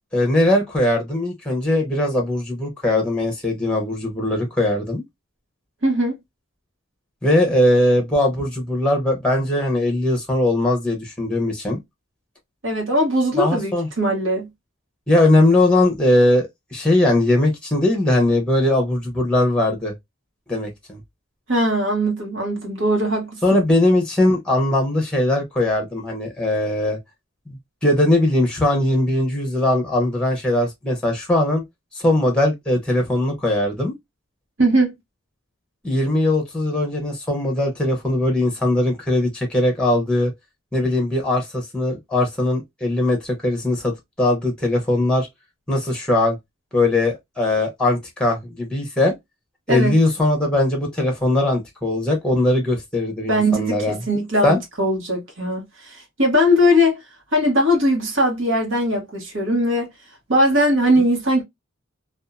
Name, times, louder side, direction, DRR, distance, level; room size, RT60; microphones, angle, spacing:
voice 1, 0.1-5.0 7.2-11.8 13.4-13.9 15.1-19.9 20.5-21.0 23.4-27.0 27.5-31.6 31.9-33.9 35.8-40.3 40.7-45.3 45.7-46.4 46.7-49.1 49.7-54.0 54.4-54.6, left 1 dB, 5° left, 0.8 m, -20 dB
voice 2, 5.8-6.2 12.6-14.5 21.5-23.6 34.6-34.9 49.7-50.0 53.3-57.0 57.3-59.9 60.3-61.4, equal, 65° right, 1.2 m, -20 dB
2.7 x 2.3 x 2.3 m
head